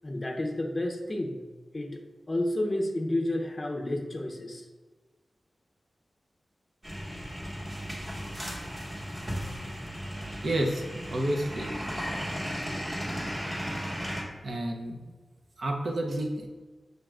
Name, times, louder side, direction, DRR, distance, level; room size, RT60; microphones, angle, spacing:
voice 1, 0.0-1.4 1.7-2.0 2.3-4.7, left 1 dB, 30° left, 2 dB, 0.5 m, -30 dB
sound 1, 6.8-14.2, equal, 20° right, 1.0 m, -35 dB
voice 2, 10.4-11.8 14.4-15.0 15.6-16.5, right 1 dB, 65° right, 2 dB, 0.6 m, -30 dB
6.4 x 2.4 x 3.3 m, 1.3 s
wide cardioid pair, 105°, 0 cm